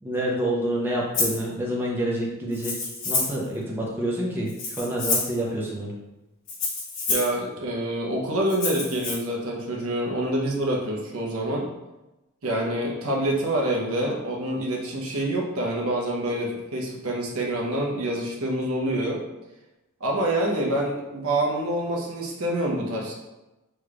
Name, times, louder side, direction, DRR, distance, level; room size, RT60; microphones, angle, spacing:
voice 1, 0.0-6.0, right 1 dB, 10° right, -5 dB, 0.8 m, -28 dB
Rattle (instrument), 1.1-1.4 2.5-3.4 4.5-5.4 6.5-7.3 8.5-9.1, left 3 dB, 60° left, 1.2 m, -28 dB
voice 2, 7.1-11.7 12.4-19.2 20.0-23.1, right 1 dB, 75° right, -2 dB, 1.0 m, -26 dB
6.3 x 3.2 x 2.4 m, 1.0 s
head